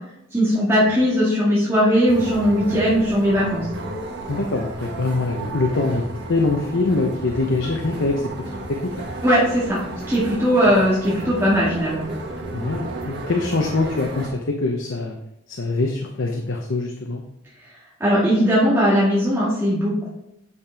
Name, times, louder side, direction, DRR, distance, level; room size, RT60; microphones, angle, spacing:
voice 1, 0.3-3.7 9.2-9.8 10.1-12.0 18.0-20.1, equal, 10° right, -9 dB, 2.1 m, -19 dB
sound 1, 2.1-14.3, right 2 dB, 55° right, 1.4 m, -33 dB
voice 2, 4.3-8.2 8.7-9.1 12.5-15.2 15.5-17.2, left 3 dB, 70° left, 2 dB, 0.8 m, -23 dB
8.4 x 6.8 x 3.5 m, 0.83 s
head